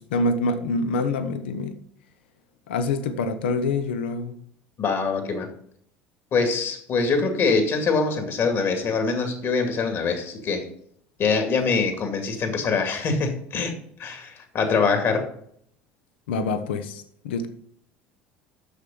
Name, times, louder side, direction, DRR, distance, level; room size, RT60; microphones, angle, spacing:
voice 1, 0.0-1.8 2.7-4.4 16.3-17.5, left 3 dB, 80° left, 10 dB, 0.7 m, -26 dB
voice 2, 4.8-5.5 6.3-10.7 11.2-13.7 14.0-15.3, left 4 dB, 50° left, 5 dB, 2.3 m, -24 dB
6.7 x 6.3 x 6.9 m, 0.66 s
hypercardioid pair, 75°, 6 cm